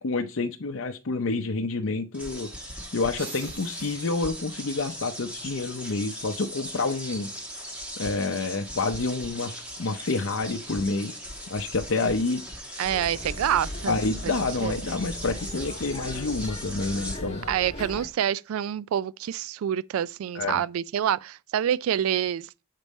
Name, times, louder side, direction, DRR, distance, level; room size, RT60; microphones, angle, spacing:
voice 1, 0.0-7.3 7.7-11.2 11.5-12.8 13.9-17.5 20.3-20.6, left 3 dB, 70° left, 0.6 m, -29 dB
sound 1, 2.1-17.2, equal, 5° right, 1.4 m, -39 dB
sound 2, 3.1-6.4, right 3 dB, 70° right, 4.9 m, -47 dB
sound 3, 12.8-18.1, left 1 dB, 30° left, 1.5 m, -38 dB
voice 2, 12.8-14.0 14.2-14.3 14.6-14.7 17.5-22.6, right 9 dB, 90° right, 0.3 m, -27 dB
7.4 x 5.3 x 4.1 m
head